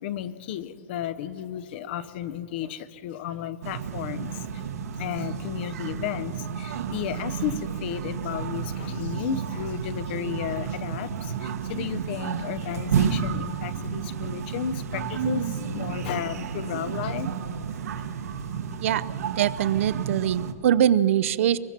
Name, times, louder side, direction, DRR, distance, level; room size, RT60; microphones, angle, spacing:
voice 1, 0.0-4.6 4.9-17.3 18.2-18.8, left 9 dB, 40° left, 15 dB, 0.7 m, -33 dB
sound 1, 3.6-20.5, right 7 dB, 70° right, 1.3 m, -31 dB
voice 2, 18.8-21.6, right 10 dB, 55° right, 16 dB, 0.6 m, -23 dB
23.0 x 21.5 x 5.9 m, 2.4 s
hypercardioid pair, 165°, 9 cm